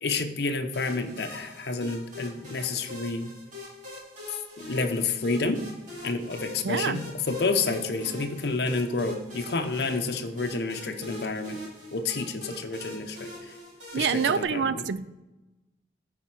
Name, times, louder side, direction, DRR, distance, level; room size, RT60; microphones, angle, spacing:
voice 1, 0.0-3.3 4.6-5.6 6.0-11.6 11.9-13.5 13.9-14.9, left 3 dB, 65° left, 0.7 m, -29 dB
sound 1, 0.7-14.4, left 1 dB, 45° right, 2.4 m, -44 dB
voice 2, 6.6-7.0 13.9-15.0, right 6 dB, 85° right, 0.4 m, -26 dB
9.0 x 4.3 x 4.4 m
head